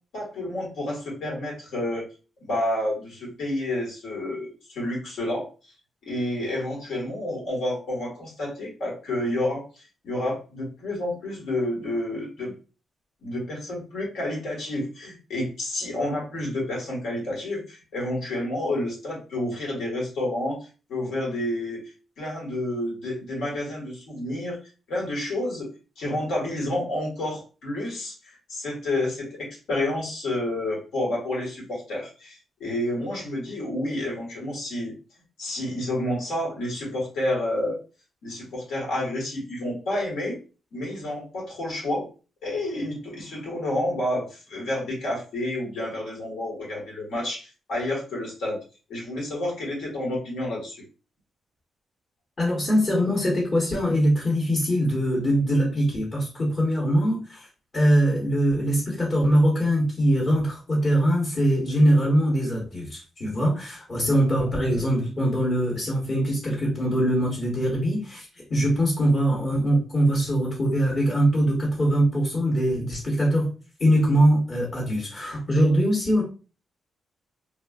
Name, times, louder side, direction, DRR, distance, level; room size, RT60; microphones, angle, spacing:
voice 1, 0.1-2.0 2.5-5.5 6.1-12.5 13.2-20.6 20.9-21.8 22.2-24.6 24.9-25.7 26.0-28.1 28.5-34.9 35.4-37.8 38.2-40.4 40.7-42.1 42.4-48.6 48.9-50.8, left 1 dB, 85° left, -3 dB, 1.5 m, -29 dB
voice 2, 52.4-57.5 57.7-73.5 73.8-76.2, equal, 40° left, -4 dB, 1.1 m, -22 dB
3.3 x 2.3 x 2.4 m, 0.35 s
cardioid pair, 110°, 0 cm